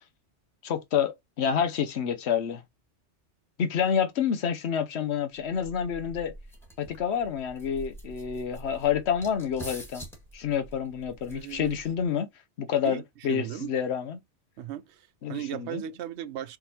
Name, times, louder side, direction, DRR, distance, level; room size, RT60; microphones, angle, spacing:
voice 1, 0.6-2.6 3.6-6.3 6.8-10.1 10.3-12.3 12.6-14.2 15.2-15.8, left 8 dB, 70° left, 1.0 m, -28 dB
sound 1, 5.4-12.1, right 1 dB, ahead, 1.7 m, -46 dB
voice 2, 11.3-11.8 12.8-13.7 14.6-16.6, right 11 dB, 75° right, 0.8 m, -37 dB
4.5 x 3.7 x 2.8 m
omnidirectional pair, 1.2 m